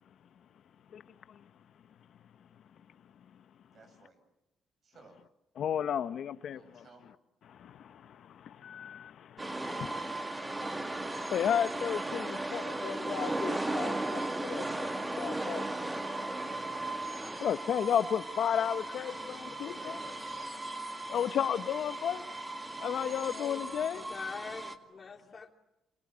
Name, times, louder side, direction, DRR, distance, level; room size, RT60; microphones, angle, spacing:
voice 1, 3.7-4.2 4.8-5.2 6.5-7.1 18.5-21.5, right 3 dB, 55° right, 7.6 m, -57 dB
voice 2, 5.6-6.8 7.5-10.0 11.3-14.9 15.2-16.5 17.4-20.0 21.1-22.2 22.8-24.0, left 9 dB, 65° left, 1.0 m, -34 dB
sound 1, 9.4-24.8, right 2 dB, 15° right, 2.0 m, -37 dB
voice 3, 23.9-25.5, left 5 dB, 40° left, 3.1 m, -43 dB
28.0 x 27.5 x 6.3 m
cardioid pair, 90°, 0 cm